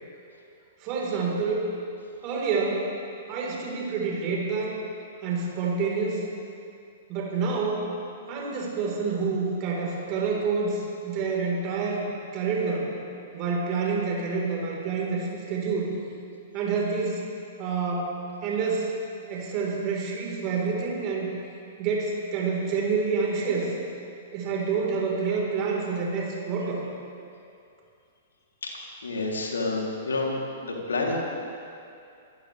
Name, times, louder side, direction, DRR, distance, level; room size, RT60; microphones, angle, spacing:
voice 1, 0.8-1.7 2.2-2.9 3.3-4.8 5.2-6.2 7.1-7.9 8.3-12.9 13.3-15.9 16.5-17.3 17.6-18.1 18.4-19.0 19.3-21.3 21.8-23.7 24.3-26.8, right 4 dB, 35° right, -2 dB, 4.1 m, -28 dB
voice 2, 29.0-31.2, left 3 dB, 75° left, -1 dB, 3.1 m, -29 dB
25.0 x 15.0 x 3.4 m, 2.5 s
figure-of-eight pair, 110°, 0 cm